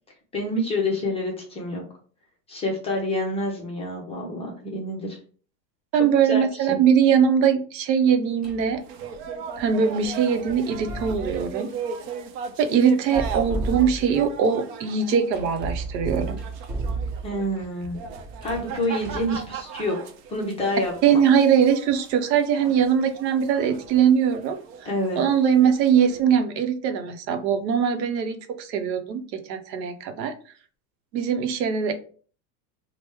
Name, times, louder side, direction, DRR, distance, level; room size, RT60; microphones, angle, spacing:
voice 1, 0.3-1.8 2.5-5.2 5.9-6.8 17.2-18.0 18.4-20.0 20.3-21.2 24.8-25.2, left 1 dB, 15° left, -1 dB, 0.4 m, -28 dB
voice 2, 5.9-8.8 9.6-11.7 12.6-16.4 21.0-24.6 25.2-30.3 31.1-31.9, right 7 dB, 90° right, 8 dB, 0.7 m, -21 dB
sound 1, 8.4-8.8 10.7-11.5 13.0-14.3 15.3-17.5 18.2-19.4, right 3 dB, 30° right, 1.0 m, -32 dB
sound 2, 8.8-26.2, right 6 dB, 55° right, 0.6 m, -38 dB
2.9 x 2.1 x 3.4 m, 0.42 s
supercardioid pair, 130°, 49 cm